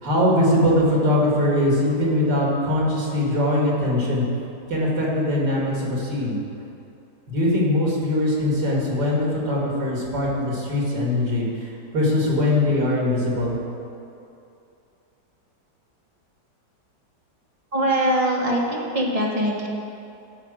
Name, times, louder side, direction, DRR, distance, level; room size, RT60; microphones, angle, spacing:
voice 1, 0.0-4.2 4.7-6.4 7.3-13.6, left 1 dB, 75° right, -4 dB, 2.7 m, -21 dB
voice 2, 17.7-19.7, right 1 dB, 20° right, -3 dB, 1.2 m, -22 dB
13.0 x 5.0 x 6.4 m, 2.7 s
omnidirectional pair, 1.9 m